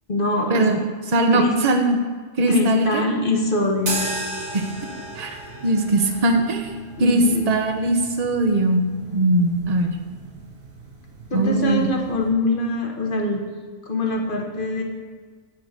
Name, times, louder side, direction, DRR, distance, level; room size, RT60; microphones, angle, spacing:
voice 1, 0.1-0.7 1.3-1.5 2.5-4.1 7.0-7.5 11.3-13.4 13.8-14.8, left 2 dB, 40° left, 2 dB, 1.2 m, -23 dB
voice 2, 1.1-2.0 2.4-3.0 4.5-4.7 5.2-6.7 7.0-8.8 9.1-9.9 11.3-11.9, right 2 dB, 35° right, 5 dB, 0.8 m, -20 dB
sound 1, 3.8-12.3, right 3 dB, 75° right, 2.2 m, -36 dB
8.5 x 5.7 x 6.5 m, 1.5 s
omnidirectional pair, 1.4 m